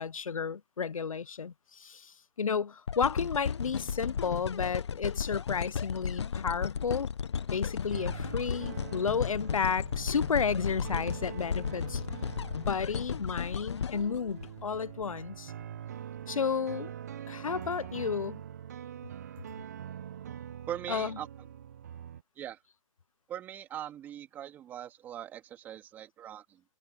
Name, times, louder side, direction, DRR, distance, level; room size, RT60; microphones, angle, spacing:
voice 1, 0.0-7.1 7.5-12.0 12.5-15.5 16.3-16.9 17.3-18.4 20.9-21.2, left 6 dB, 90° left, 0.7 m, -32 dB
sound 1, 2.9-15.1 15.6-15.7, left 7 dB, 55° left, 1.1 m, -35 dB
sound 2, 7.9-22.2, right 9 dB, 30° right, 0.7 m, -44 dB
voice 2, 20.7-21.3 22.4-22.6 23.3-26.6, right 11 dB, 10° right, 3.0 m, -41 dB
hypercardioid pair, 165°, 17 cm